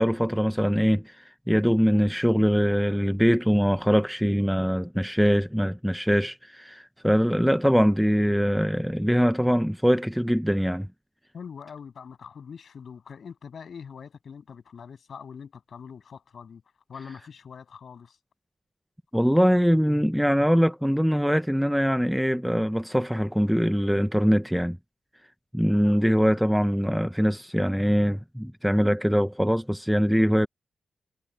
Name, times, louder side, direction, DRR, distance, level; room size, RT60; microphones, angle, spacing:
voice 1, 0.0-10.9 19.1-24.8 25.5-30.5, equal, ahead, 0.6 m, -23 dB
voice 2, 11.3-16.6 16.9-18.2, left 6 dB, 60° left, 7.2 m, -43 dB
wide cardioid pair, 120°, 0 cm